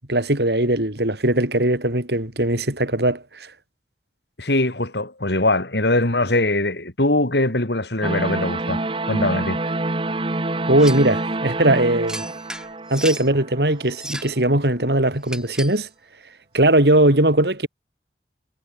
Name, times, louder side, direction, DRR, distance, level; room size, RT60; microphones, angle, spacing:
voice 1, 0.1-3.5 10.7-12.2 12.9-15.9 16.5-17.7, right 1 dB, 65° right, 4.0 m, -19 dB
voice 2, 4.4-8.8 9.1-9.6, left 2 dB, 70° left, 3.7 m, -21 dB
sound 1, 8.0-14.1, right 2 dB, 30° right, 1.3 m, -27 dB
sound 2, 10.8-11.1 12.1-13.3 13.9-14.4 15.3-15.8, right 1 dB, 5° right, 2.7 m, -34 dB
head